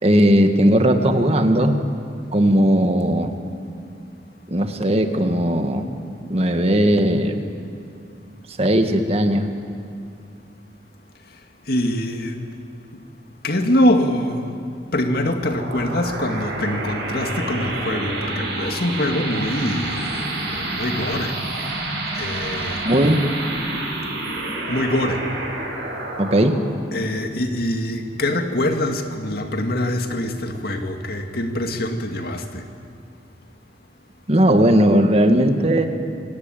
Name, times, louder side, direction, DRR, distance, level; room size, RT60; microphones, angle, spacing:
voice 1, 0.0-1.8 2.3-3.3 4.5-5.9 6.3-7.4 8.6-9.5 22.8-23.3 26.2-26.6 34.3-35.9, equal, 35° right, 6 dB, 1.7 m, -17 dB
voice 2, 11.7-12.5 13.4-14.6 14.9-21.3 22.2-22.8 24.7-25.2 26.9-32.6, left 1 dB, 60° left, 5 dB, 2.1 m, -24 dB
sound 1, 15.1-28.3, right 2 dB, 70° right, 7.5 m, -29 dB
27.5 x 17.5 x 9.1 m, 2.5 s
head